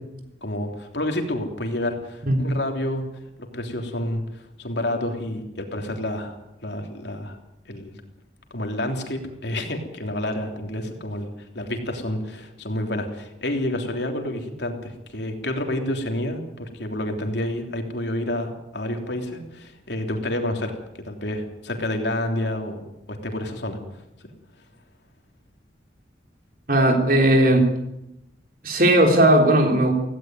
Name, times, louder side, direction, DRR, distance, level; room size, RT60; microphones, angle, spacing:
voice 1, 0.4-3.0 3.5-7.4 7.7-8.0 8.5-20.8 21.0-23.8, left 1 dB, 65° left, 4 dB, 3.3 m, -29 dB
voice 2, 26.7-27.7 28.6-29.9, right 1 dB, 50° right, 3 dB, 3.7 m, -17 dB
17.0 x 17.0 x 9.3 m, 0.88 s
head